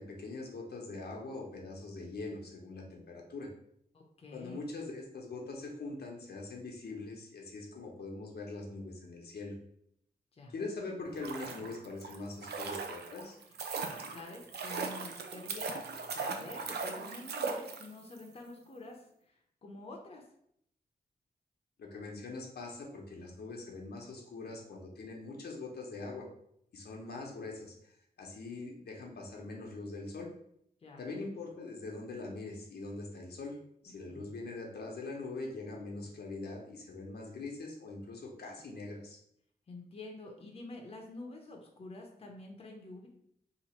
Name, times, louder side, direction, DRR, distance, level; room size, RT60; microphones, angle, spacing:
voice 1, 0.0-3.5 4.3-9.5 10.5-13.4 21.8-26.3 26.7-27.9 28.2-30.3 31.0-33.6 33.8-39.2, left 3 dB, 85° left, -1 dB, 0.8 m, -42 dB
voice 2, 3.9-4.6 10.4-10.5 14.1-19.3 19.6-20.2 30.8-31.0 34.1-34.3 39.7-43.1, left 2 dB, 35° left, 1 dB, 0.6 m, -48 dB
sound 1, 11.0-18.2 18.5-18.6, right 4 dB, 90° right, 0.4 m, -39 dB
2.9 x 2.4 x 4.3 m, 0.71 s
wide cardioid pair, 110°, 16 cm